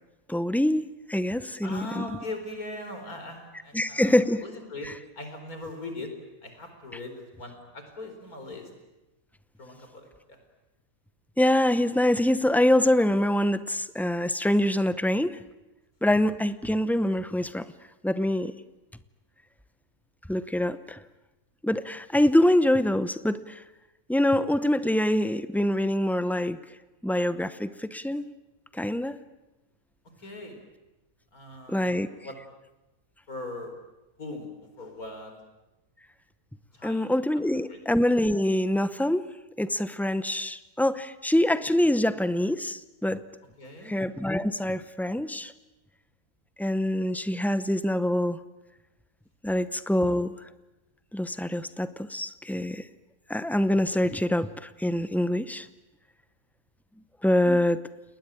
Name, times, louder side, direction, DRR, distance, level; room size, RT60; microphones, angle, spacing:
voice 1, 0.3-2.1 3.7-4.4 4.8-4.9 11.4-15.4 16.0-17.7 18.0-18.5 20.3-21.0 21.6-23.6 24.1-26.6 27.0-28.3 28.7-29.2 31.7-32.1 36.8-39.3 39.6-43.2 43.8-45.5 46.6-48.4 49.4-50.3 51.1-52.8 53.3-55.7 57.2-57.8, left 1 dB, ahead, 13 dB, 0.3 m, -25 dB
voice 2, 1.6-4.9 5.2-6.1 6.4-8.7 9.6-10.1 30.2-30.5 31.3-32.3 33.3-33.7 34.2-34.5 34.8-35.3 36.7-37.1 37.7-37.8 43.6-43.9, left 2 dB, 70° left, 5 dB, 4.9 m, -40 dB
29.5 x 20.0 x 9.0 m, 1.0 s
omnidirectional pair, 1.6 m